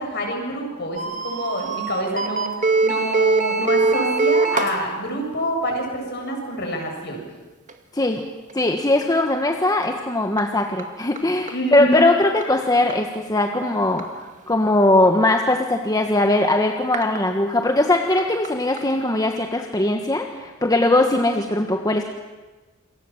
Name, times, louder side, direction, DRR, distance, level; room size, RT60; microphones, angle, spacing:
voice 1, 0.0-2.5 2.8-7.2 11.5-12.1 20.8-20.9, equal, 55° left, 2 dB, 7.7 m, -27 dB
sound 1, 1.0-4.8 7.7-7.8 8.5-8.6 10.4-10.5 10.8-10.9 11.2-11.3 11.5-11.6 12.4-12.5 12.9-13.0 14.0-14.1 16.9-17.2 18.2-18.3 18.4-18.5 18.8-18.9, right 3 dB, 35° right, 2.2 m, -21 dB
voice 2, 8.5-14.0 14.5-22.0, left 2 dB, 20° left, 3 dB, 1.5 m, -20 dB
28.0 x 24.0 x 7.4 m, 1.2 s
head